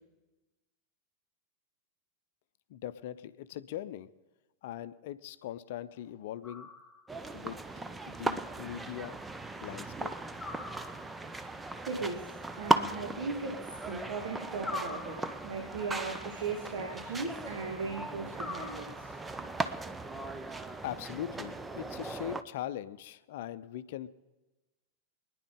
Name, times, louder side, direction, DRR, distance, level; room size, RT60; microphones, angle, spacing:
voice 1, 2.7-4.1 4.6-6.7 7.3-9.2 9.6-10.2 20.8-24.1, left 12 dB, 55° left, 14 dB, 0.7 m, -41 dB
sound 1, 6.4-7.3 10.4-11.4 14.6-15.7 18.3-19.3, left 3 dB, 5° left, 3.7 m, -43 dB
sound 2, 7.1-22.4, right 3 dB, 10° right, 0.7 m, -37 dB
voice 2, 11.9-19.1, right 4 dB, 55° right, 2 dB, 2.2 m, -38 dB
25.0 x 10.0 x 3.8 m, 1.1 s
figure-of-eight pair, 90°, 0 cm